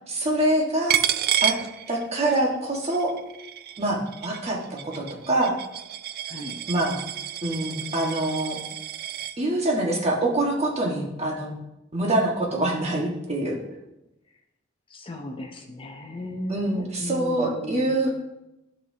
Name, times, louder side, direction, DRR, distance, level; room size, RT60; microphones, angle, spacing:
voice 1, 0.1-1.0 1.4-1.5 1.9-3.1 3.8-5.6 6.7-7.0 7.4-8.6 9.4-11.5 11.9-13.6 16.5-18.1, right 1 dB, 35° right, -1 dB, 1.5 m, -25 dB
Coin (dropping), 0.9-2.4 2.7-9.4, right 11 dB, 50° right, 0.3 m, -30 dB
voice 2, 6.3-6.6 14.9-18.0, left 1 dB, 25° left, 2 dB, 0.7 m, -35 dB
12.5 x 5.7 x 2.8 m, 0.92 s
head